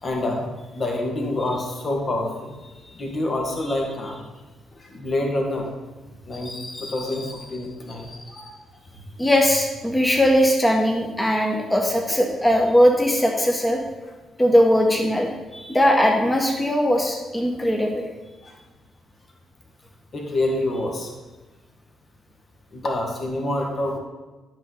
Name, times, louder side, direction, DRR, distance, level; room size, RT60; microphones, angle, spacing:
voice 1, 0.0-0.5 0.7-2.6 2.9-4.2 4.8-5.7 6.3-8.5 18.4-18.5 20.1-21.1 22.7-24.0, left 1 dB, 40° left, 1 dB, 2.0 m, -27 dB
voice 2, 9.2-13.8 14.4-18.1, equal, 15° left, 1 dB, 1.6 m, -19 dB
11.5 x 6.5 x 4.2 m, 1.2 s
figure-of-eight pair, 40°, 0 cm